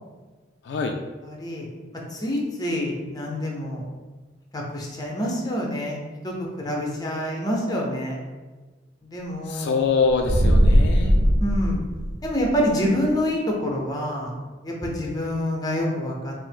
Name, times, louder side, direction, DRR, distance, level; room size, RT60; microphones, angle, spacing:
voice 1, 0.6-1.0 9.5-11.1, left 4 dB, 65° left, 4 dB, 0.3 m, -24 dB
voice 2, 1.2-1.7 2.1-3.8 4.5-8.2 9.0-9.9 11.4-11.8 12.2-14.3 14.6-16.3, equal, 20° left, -1 dB, 0.7 m, -27 dB
sound 1, 10.1-12.6, equal, 45° right, 0.4 m, -19 dB
5.0 x 2.0 x 3.5 m, 1.3 s
head